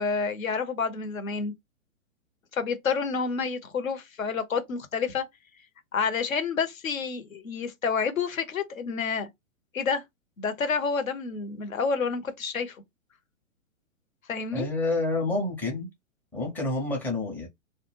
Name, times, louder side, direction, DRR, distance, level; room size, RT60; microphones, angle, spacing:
voice 1, 0.0-1.5 2.5-5.2 5.9-9.3 9.7-10.0 10.4-12.8 14.3-14.7, left 5 dB, 80° left, 0.8 m, -29 dB
voice 2, 14.5-15.9 16.3-17.5, left 2 dB, 5° left, 0.5 m, -28 dB
2.2 x 2.2 x 3.0 m
figure-of-eight pair, 120°, 40 cm